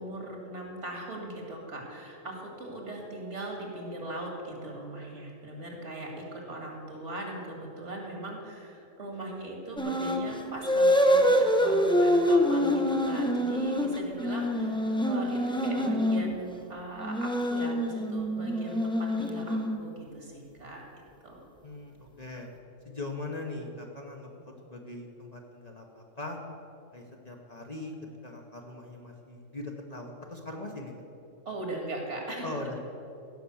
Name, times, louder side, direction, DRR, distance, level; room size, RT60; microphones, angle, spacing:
voice 1, 0.0-20.8 21.2-21.4 31.5-32.5, right 1 dB, 60° right, 0 dB, 2.5 m, -39 dB
sound 1, 9.8-10.3 10.6-16.3 17.0-19.9, equal, 5° left, 0.5 m, -25 dB
voice 2, 21.6-22.5 22.8-26.4 26.9-27.9 28.2-30.9 32.4-32.8, left 2 dB, 35° left, 0 dB, 1.0 m, -40 dB
15.5 x 6.0 x 7.1 m, 2.7 s
omnidirectional pair, 1.4 m